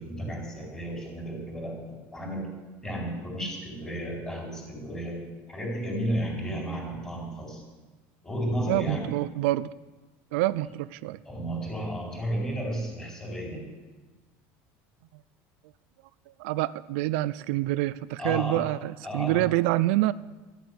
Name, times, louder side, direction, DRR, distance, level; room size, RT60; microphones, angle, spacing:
voice 1, 0.0-2.5 2.8-7.6 8.2-9.1 11.2-13.7 18.2-18.7 19.0-19.5, equal, 10° left, -2 dB, 4.2 m, -33 dB
voice 2, 8.7-9.7 10.3-11.2 16.4-20.1, right 17 dB, 80° right, 16 dB, 0.4 m, -26 dB
13.5 x 8.2 x 9.5 m, 1.2 s
cardioid pair, 165°, 7 cm